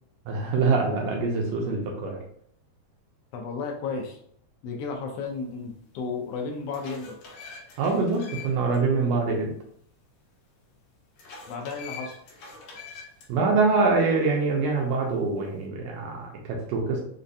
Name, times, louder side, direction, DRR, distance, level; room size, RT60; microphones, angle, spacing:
voice 1, 0.3-2.2 7.8-9.5 13.3-17.0, right 4 dB, 75° right, 0 dB, 1.6 m, -24 dB
voice 2, 3.3-4.2 4.6-7.2 11.5-12.2, left 4 dB, 85° left, 1 dB, 1.3 m, -33 dB
sound 1, 5.8-5.9 6.4-8.8 9.1-9.2 11.2-13.3, left 5 dB, 65° left, 1.7 m, -44 dB
4.9 x 2.2 x 2.6 m, 0.65 s
omnidirectional pair, 3.4 m